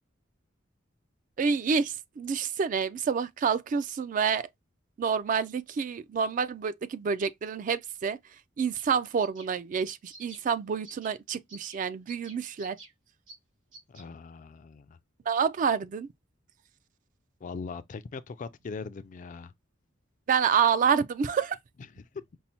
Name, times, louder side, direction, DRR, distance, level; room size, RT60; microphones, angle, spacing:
voice 1, 1.4-4.5 5.0-8.2 8.6-12.8 15.3-16.1 20.3-21.6, right 6 dB, 40° right, 0.3 m, -28 dB
sound 1, 8.7-8.9 9.2-9.5 9.8-10.4 10.8-11.1 11.5-11.8 12.1-12.9 13.3-13.4 13.7-14.0, right 2 dB, 80° right, 3.2 m, -48 dB
voice 2, 13.9-15.0 17.4-19.5 22.0-22.4, left 4 dB, 40° left, 0.3 m, -40 dB
5.3 x 2.0 x 2.8 m
head